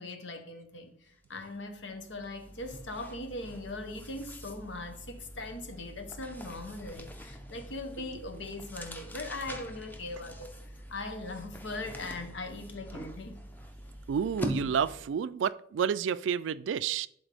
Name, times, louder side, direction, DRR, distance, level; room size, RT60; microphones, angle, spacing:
voice 1, 0.0-10.5 10.9-13.4, left 2 dB, 80° left, 1.1 m, -40 dB
sound 1, 1.2-1.4 1.7-15.2, equal, 10° left, 0.6 m, -44 dB
voice 2, 14.1-17.1, right 7 dB, 85° right, 0.3 m, -30 dB
11.0 x 4.0 x 3.5 m
head